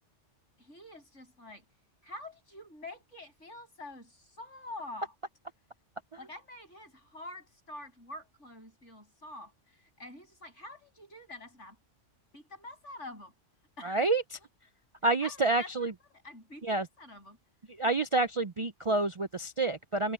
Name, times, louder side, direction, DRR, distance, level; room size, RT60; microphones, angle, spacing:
voice 1, 0.6-1.7 2.0-5.1 6.2-11.8 12.3-13.3 13.8-14.1 15.0-17.4, left 2 dB, 75° left, 7.9 m, -47 dB
voice 2, 13.8-14.2 15.0-15.9 16.6-16.9 17.8-20.1, right 3 dB, 40° right, 0.5 m, -28 dB
omnidirectional pair, 1.2 m